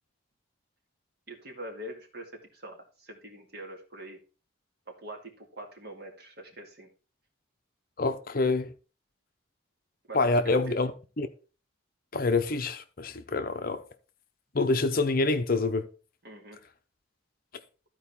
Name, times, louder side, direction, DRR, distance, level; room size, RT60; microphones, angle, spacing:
voice 1, 1.3-4.2 4.9-6.9 10.1-10.8 16.2-16.6, right 1 dB, 50° right, 2.2 m, -44 dB
voice 2, 8.0-8.7 10.1-10.9 11.2-11.3 12.1-13.8 14.5-15.9, left 3 dB, 45° left, 0.7 m, -26 dB
13.5 x 4.7 x 4.2 m
head